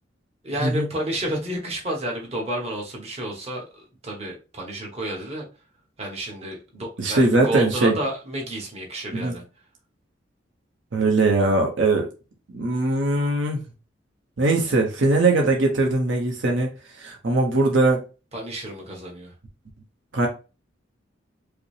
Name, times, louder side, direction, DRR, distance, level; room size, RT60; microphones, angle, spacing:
voice 1, 0.4-5.5 6.0-9.4 18.3-19.3, right 1 dB, 35° right, 1.2 m, -30 dB
voice 2, 7.0-8.0 9.1-9.3 10.9-12.1 12.5-13.6 14.4-16.7 17.0-18.0 20.1-20.3, right 2 dB, 75° right, 0.8 m, -20 dB
4.9 x 2.0 x 3.2 m
head